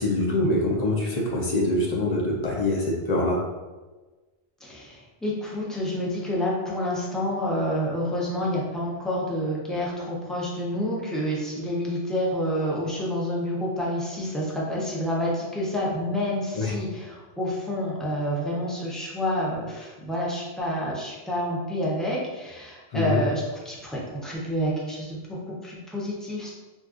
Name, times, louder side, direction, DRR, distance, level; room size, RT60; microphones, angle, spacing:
voice 1, 0.0-3.4 16.5-16.7 22.9-23.2, left 1 dB, 45° left, -3 dB, 0.6 m, -24 dB
voice 2, 4.6-26.5, equal, ahead, -5 dB, 0.5 m, -28 dB
4.0 x 2.4 x 2.4 m, 1.2 s
omnidirectional pair, 1.1 m